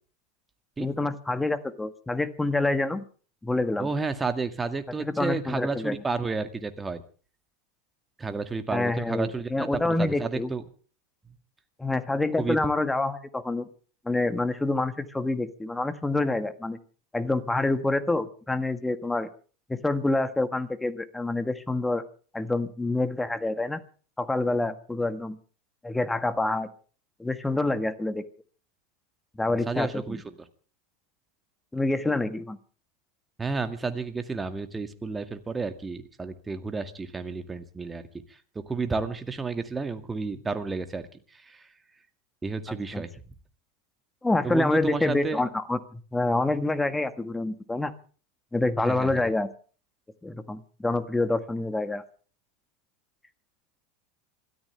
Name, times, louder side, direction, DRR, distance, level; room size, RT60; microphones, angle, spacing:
voice 1, 0.8-3.0 3.4-3.9 5.0-6.0 8.7-10.5 11.8-13.7 14.0-16.8 17.1-19.3 19.7-22.0 22.3-23.8 24.2-25.4 25.8-26.7 27.2-28.2 29.4-30.2 31.7-32.6 42.7-43.0 44.2-47.9 48.5-49.5 50.2-52.0, left 2 dB, 10° left, 11 dB, 1.6 m, -27 dB
voice 2, 3.8-7.0 8.2-10.6 12.4-12.6 29.5-30.2 33.4-38.1 38.6-41.7 42.4-43.1 44.4-45.4 48.8-49.1, right 4 dB, 15° right, 8 dB, 2.0 m, -31 dB
27.0 x 13.5 x 3.4 m, 0.40 s
hypercardioid pair, 105°, 0 cm